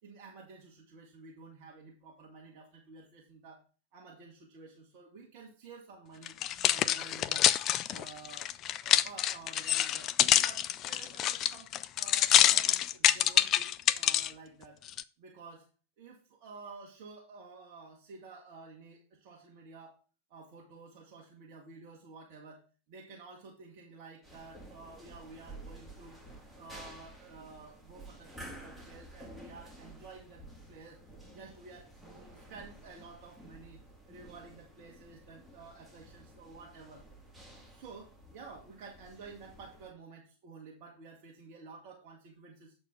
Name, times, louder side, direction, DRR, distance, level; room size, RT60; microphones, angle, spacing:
voice 1, 0.0-3.6 3.9-6.4 6.7-7.5 7.9-8.5 8.8-14.8 15.2-15.7 16.0-20.0 20.3-22.6 22.9-26.2 26.5-31.0 31.3-31.9 32.2-33.8 34.1-37.1 37.5-42.7, right 4 dB, 45° right, -1 dB, 1.3 m, -51 dB
sound 1, 6.3-14.3 14.9-15.0, left 12 dB, 35° left, 0.3 m, -26 dB
sound 2, 24.2-39.9, right 1 dB, 5° right, 2.1 m, -52 dB
7.7 x 4.4 x 5.7 m, 0.36 s
figure-of-eight pair, 90°, 0 cm